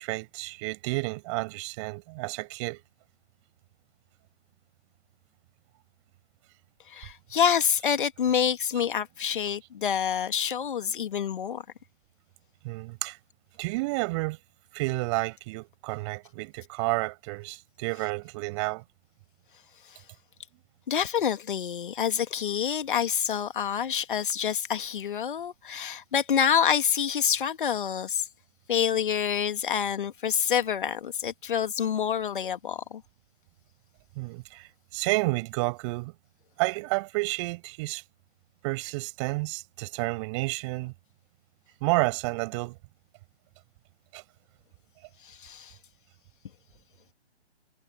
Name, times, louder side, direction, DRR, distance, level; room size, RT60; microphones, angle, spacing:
voice 1, 0.0-2.8 12.6-13.2 13.6-14.4 14.7-18.8 34.2-36.1 36.6-38.0 38.6-40.9 41.8-42.8 44.1-44.2, right 25 dB, 25° right, 6.3 m, -30 dB
voice 2, 6.9-11.6 20.9-28.3 28.7-33.0 45.2-45.7, left 8 dB, 45° left, 2.3 m, -27 dB
figure-of-eight pair, 135°, 34 cm